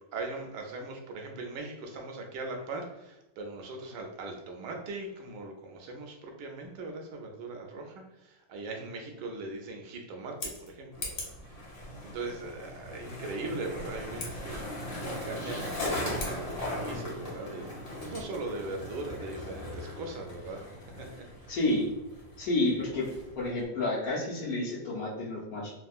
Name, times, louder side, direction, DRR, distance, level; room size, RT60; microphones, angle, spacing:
voice 1, 0.1-11.7 12.0-20.6 21.0-21.1 21.4-21.6 22.4-22.5, right 2 dB, 80° right, 2 dB, 1.2 m, -40 dB
Scissors, 10.2-11.5 14.1-14.3 16.1-16.4, left 3 dB, 85° left, 1.5 m, -39 dB
Skateboard, 10.9-23.7, left 1 dB, 40° left, 0.5 m, -39 dB
voice 2, 21.5-21.9 22.4-23.0 23.4-25.7, left 2 dB, 65° left, -5 dB, 1.1 m, -30 dB
3.5 x 2.1 x 2.3 m, 0.97 s
omnidirectional pair, 1.9 m